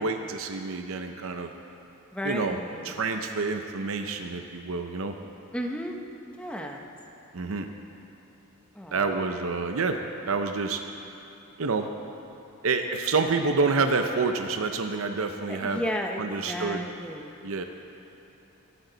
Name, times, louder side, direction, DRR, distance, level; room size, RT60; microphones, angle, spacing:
voice 1, 0.0-1.5 2.2-2.6 2.8-5.2 7.3-7.7 8.9-10.0 10.3-10.8 11.6-11.9 12.6-15.8 16.2-16.9 17.4-17.6, right 4 dB, 65° right, 5 dB, 0.7 m, -28 dB
voice 2, 2.1-3.0 5.5-6.0 6.3-6.8 8.7-9.1 15.5-17.4, equal, 5° left, 1 dB, 0.8 m, -33 dB
23.5 x 8.9 x 3.9 m, 2.9 s
head